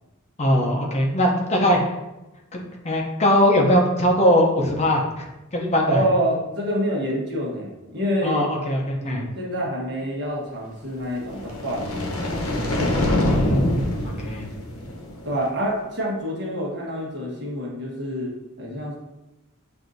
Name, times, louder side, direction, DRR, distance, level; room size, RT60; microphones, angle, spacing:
voice 1, 0.4-1.8 2.5-6.0 8.2-9.2 13.1-14.5, equal, 30° left, 0 dB, 0.6 m, -21 dB
voice 2, 5.8-8.5 9.0-12.4 12.7-12.9 15.2-18.3 18.6-19.0, equal, 55° right, -3 dB, 1.2 m, -27 dB
sound 1, 11.1-15.4, left 1 dB, 85° left, 0.8 m, -25 dB
6.0 x 2.6 x 2.6 m, 0.98 s
head